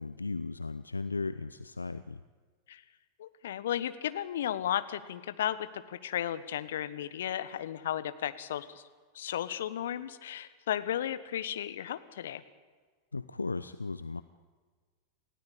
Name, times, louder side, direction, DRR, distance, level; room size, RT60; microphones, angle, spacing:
voice 1, 0.0-2.2 13.1-14.2, left 3 dB, 85° left, 13 dB, 0.6 m, -36 dB
voice 2, 3.2-8.8 9.1-12.4, left 11 dB, 65° left, 13 dB, 1.3 m, -34 dB
29.0 x 16.0 x 8.6 m, 1.5 s
figure-of-eight pair, 90°, 0 cm